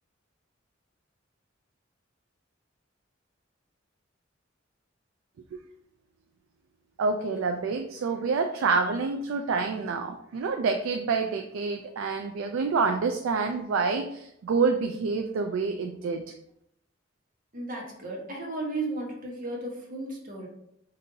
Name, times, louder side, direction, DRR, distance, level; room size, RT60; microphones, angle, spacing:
voice 1, 7.0-16.4, right 4 dB, 90° right, 5 dB, 0.3 m, -27 dB
voice 2, 17.5-20.5, right 2 dB, 45° right, -2 dB, 1.1 m, -34 dB
5.2 x 2.5 x 2.7 m, 0.75 s
head